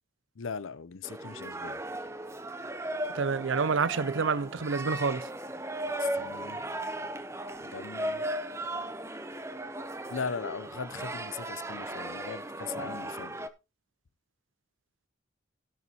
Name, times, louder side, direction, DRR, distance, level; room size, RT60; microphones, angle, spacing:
voice 1, 0.4-1.8 6.0-6.6 7.6-8.2 10.1-13.5, left 5 dB, 85° left, 0.6 m, -39 dB
sound 1, 1.0-13.5, right 1 dB, 15° right, 0.7 m, -36 dB
voice 2, 3.1-5.3, right 5 dB, 75° right, 0.6 m, -28 dB
16.5 x 6.9 x 2.9 m
head